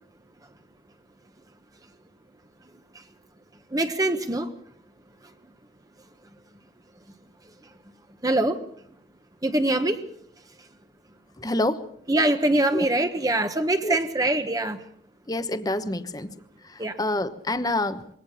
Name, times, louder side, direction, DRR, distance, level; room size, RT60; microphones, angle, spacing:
voice 1, 3.7-4.5 8.2-8.6 9.4-10.0 12.1-14.8 16.8-17.0, right 1 dB, 20° right, 7 dB, 1.2 m, -23 dB
voice 2, 11.4-11.8 12.7-12.9 13.8-14.0 15.3-16.4 16.6-18.1, left 1 dB, 20° left, 11 dB, 1.1 m, -27 dB
23.0 x 18.0 x 7.1 m, 0.65 s
head